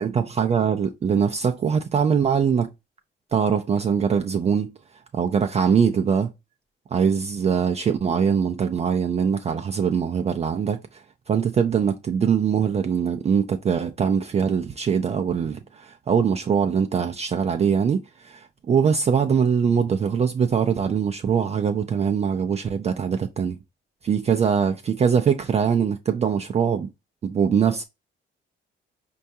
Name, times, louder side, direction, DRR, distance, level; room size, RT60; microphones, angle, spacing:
voice 1, 0.0-2.7 3.3-4.7 5.1-6.3 6.9-23.6 24.0-26.9 27.2-27.8, right 7 dB, 35° right, 0.3 m, -22 dB
4.4 x 2.3 x 2.7 m
cardioid pair, 90°, 20 cm